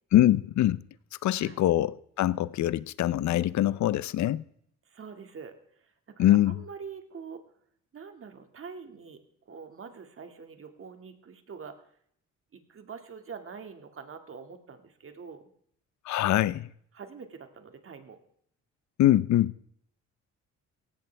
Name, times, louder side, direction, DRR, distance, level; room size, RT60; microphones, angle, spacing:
voice 1, 0.1-0.8 1.2-4.4 6.2-6.6 16.0-16.7 19.0-19.6, left 13 dB, 70° left, 0.6 m, -23 dB
voice 2, 1.3-1.6 4.9-7.4 7.9-9.2 9.5-11.9 12.5-15.5 16.9-18.2, right 5 dB, 45° right, 2.1 m, -45 dB
17.5 x 16.0 x 3.4 m
cardioid pair, 90°, 30 cm